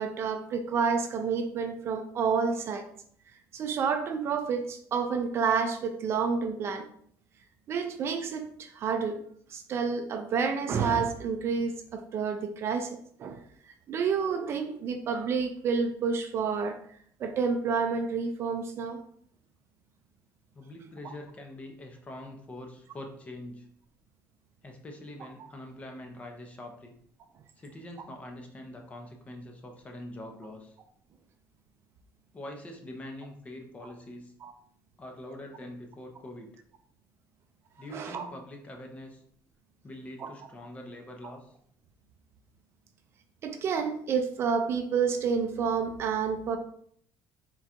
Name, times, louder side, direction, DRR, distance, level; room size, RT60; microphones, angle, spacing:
voice 1, 0.0-2.9 3.5-6.9 7.7-9.2 9.5-13.4 13.9-16.8 17.2-19.0 21.0-21.1 34.4-34.5 37.9-38.3 40.2-40.3 43.4-46.6, right 5 dB, 40° right, 7 dB, 0.4 m, -29 dB
voice 2, 20.5-23.7 24.6-26.9 27.6-30.8 32.3-34.3 35.0-36.5 37.8-39.2 39.8-41.5, left 1 dB, 20° left, 3 dB, 0.6 m, -44 dB
3.7 x 2.3 x 4.2 m, 0.64 s
cardioid pair, 150°, 6 cm